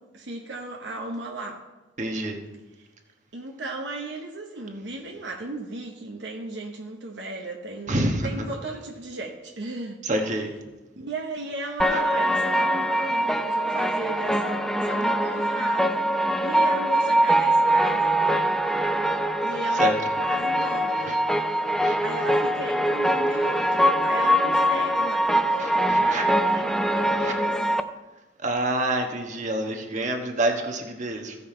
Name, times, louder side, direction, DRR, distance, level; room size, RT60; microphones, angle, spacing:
voice 1, 0.0-1.7 2.8-2.9 3.3-10.0 11.0-18.2 19.4-19.8 20.2-21.2 21.5-21.6 22.0-27.5, right 2 dB, 65° right, 1 dB, 1.0 m, -36 dB
voice 2, 2.0-2.4 7.9-8.4 10.0-10.5 11.9-12.0 19.7-20.0 21.0-21.2 21.7-22.0 25.6-26.2 27.2-27.3 28.4-31.4, right 1 dB, 40° right, 2 dB, 1.2 m, -27 dB
sound 1, 11.8-27.8, right 1 dB, ahead, 0.3 m, -23 dB
Wind instrument woodwind instrument, 20.4-25.3, left 3 dB, 40° left, 0.7 m, -46 dB
15.5 x 5.5 x 4.4 m, 1.1 s
head